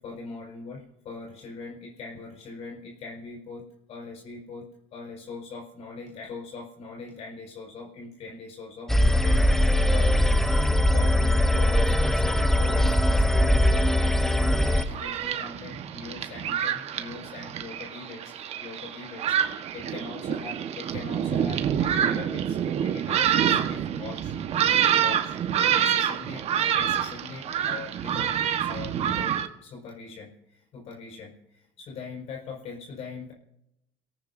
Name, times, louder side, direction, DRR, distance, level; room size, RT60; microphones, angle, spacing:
voice 1, 0.0-24.3 24.7-25.3 25.7-26.4 26.7-28.3 28.6-29.3 29.6-33.3, left 4 dB, 60° left, -1 dB, 5.1 m, -41 dB
sound 1, 8.9-14.9, left 1 dB, 5° left, 0.9 m, -21 dB
Thunderstorm, 14.7-29.5, right 9 dB, 55° right, 1.3 m, -27 dB
28.5 x 18.0 x 2.7 m, 0.83 s
supercardioid pair, 95°, 13 cm